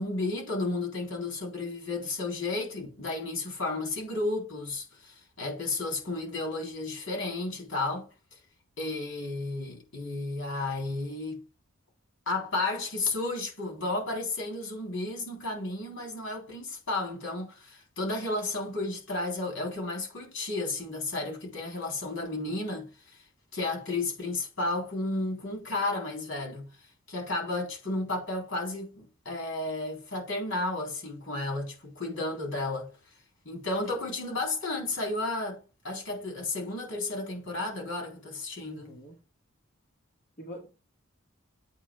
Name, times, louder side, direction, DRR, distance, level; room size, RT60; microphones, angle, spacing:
voice 1, 0.0-8.1 8.8-11.4 12.3-23.2 23.5-26.7 27.1-32.9 33.5-38.9, left 2 dB, 65° left, 3.7 m, -33 dB
voice 2, 38.7-39.2 40.4-40.7, equal, 35° left, 1.6 m, -44 dB
8.4 x 3.1 x 4.7 m
head